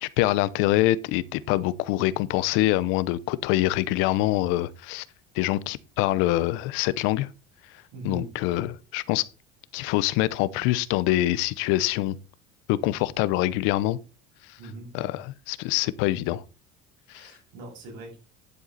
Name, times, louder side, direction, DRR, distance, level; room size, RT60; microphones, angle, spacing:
voice 1, 0.0-5.1 5.3-7.3 8.0-9.3 9.7-12.2 12.7-14.0 14.9-16.4 17.1-17.3, left 16 dB, 70° left, 0.8 m, -25 dB
voice 2, 7.9-8.3 14.6-15.2 17.1-18.2, right 2 dB, 65° right, 7.3 m, -41 dB
11.0 x 7.7 x 4.1 m
cardioid pair, 175°, 21 cm